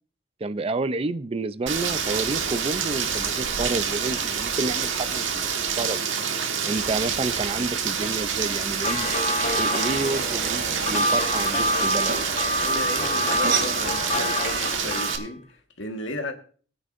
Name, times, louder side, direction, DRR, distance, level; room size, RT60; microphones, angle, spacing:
voice 1, 0.4-6.1 6.6-9.1 9.5-12.2, right 3 dB, 30° right, 0.4 m, -30 dB
Rain, 1.7-15.2, right 7 dB, 70° right, 1.5 m, -27 dB
sound 1, 8.7-15.3, left 1 dB, 35° left, 1.0 m, -27 dB
sound 2, 9.0-14.8, right 4 dB, 55° right, 2.5 m, -33 dB
voice 2, 12.6-16.3, left 2 dB, 70° left, 1.6 m, -35 dB
19.5 x 9.1 x 2.6 m
head